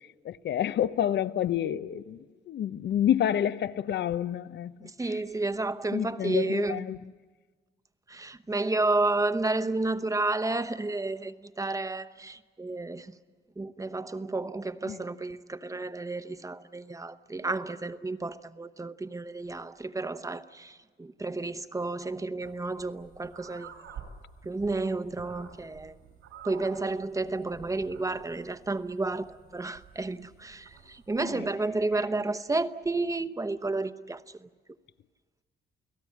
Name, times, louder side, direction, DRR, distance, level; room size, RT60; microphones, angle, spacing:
voice 1, 0.2-4.9 5.9-7.0 14.9-15.0 31.2-31.3, left 10 dB, 60° left, 0.8 m, -29 dB
voice 2, 4.8-6.8 8.1-13.2 13.6-23.7 24.4-25.9 26.4-34.5, right 2 dB, 15° right, 0.9 m, -31 dB
sound 1, 22.4-31.2, right 7 dB, 85° right, 4.9 m, -50 dB
29.5 x 17.5 x 8.5 m
cardioid pair, 90°, 20 cm